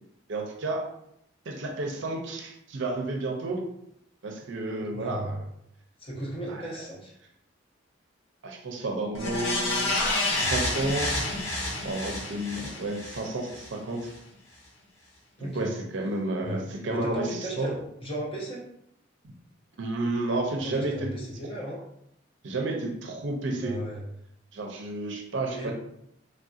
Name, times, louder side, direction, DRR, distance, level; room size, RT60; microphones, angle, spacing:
voice 1, 0.3-0.9 1.5-3.6 4.2-5.4 6.5-6.8 8.4-11.1 11.8-14.1 15.4-17.3 17.6-17.7 19.2-19.3 19.8-21.1 22.4-23.8 24.5-25.7, right 2 dB, 65° right, 1 dB, 0.5 m, -31 dB
voice 2, 4.9-5.4 6.0-7.1 15.4-15.8 16.4-16.6 16.9-18.6 20.6-21.8 23.6-24.0 25.5-25.7, right 1 dB, 25° left, -4 dB, 0.7 m, -35 dB
sound 1, 9.1-13.7 14.1-14.2, left 2 dB, 60° left, 0.8 m, -29 dB
3.3 x 2.6 x 2.4 m, 0.77 s
head